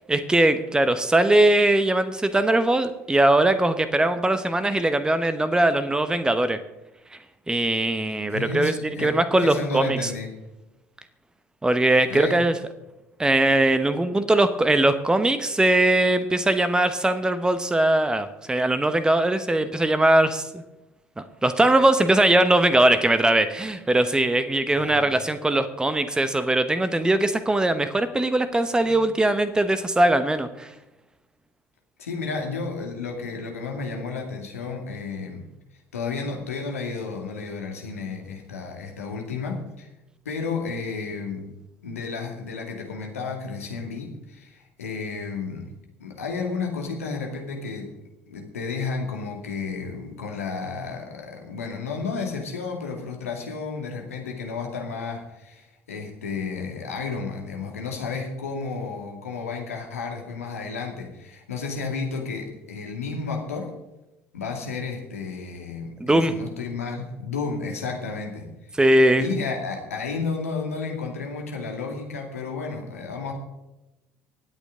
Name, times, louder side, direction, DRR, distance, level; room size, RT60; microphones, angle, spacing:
voice 1, 0.1-6.6 7.5-8.7 9.0-10.1 11.6-12.5 13.2-20.6 21.2-30.7 66.0-66.3 68.8-69.2, right 1 dB, 10° right, 11 dB, 1.0 m, -20 dB
voice 2, 8.3-10.4 12.1-12.6 24.6-25.1 28.7-29.1 32.0-35.5 35.9-39.9 40.2-41.5 41.8-45.7 46.0-47.9 48.3-63.7 64.3-68.8 69.2-73.3, left 4 dB, 80° left, 1 dB, 2.3 m, -32 dB
24.5 x 8.4 x 3.7 m, 0.99 s
figure-of-eight pair, 60°, 8 cm